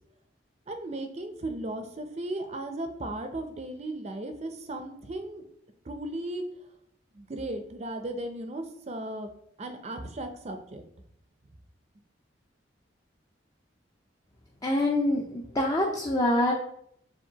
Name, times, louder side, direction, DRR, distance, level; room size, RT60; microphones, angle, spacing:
voice 1, 0.7-5.4 5.9-6.4 7.1-9.3 9.6-10.8, right 1 dB, 35° right, 6 dB, 0.5 m, -36 dB
voice 2, 14.6-16.5, left 1 dB, 20° left, -1 dB, 0.4 m, -25 dB
7.1 x 2.6 x 2.8 m, 0.72 s
head